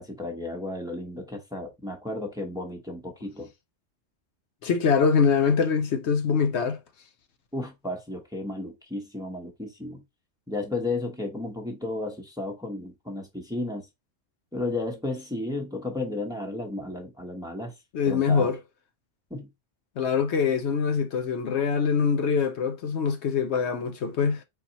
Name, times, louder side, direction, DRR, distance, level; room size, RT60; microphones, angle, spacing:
voice 1, 0.0-3.5 7.5-10.0 10.5-13.9 14.5-17.7 18.1-18.5 19.3-19.5, left 2 dB, 5° right, 0.8 m, -33 dB
voice 2, 4.6-6.8 17.9-18.6 20.0-24.4, left 6 dB, 70° left, 0.9 m, -24 dB
4.1 x 4.1 x 2.8 m
omnidirectional pair, 1.3 m